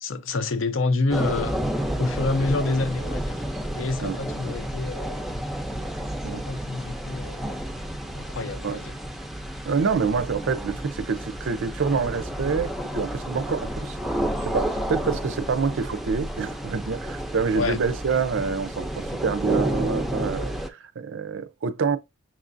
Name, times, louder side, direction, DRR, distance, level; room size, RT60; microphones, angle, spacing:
voice 1, 0.0-1.6 2.0-3.5 3.7-5.3 6.3-7.7 8.1-9.0 17.6-17.8, left 3 dB, 70° left, 0.6 m, -28 dB
sound 1, 1.1-20.7, equal, ahead, 0.5 m, -31 dB
voice 2, 9.7-14.0 14.4-22.0, right 5 dB, 65° right, 0.5 m, -27 dB
6.1 x 2.5 x 2.5 m
head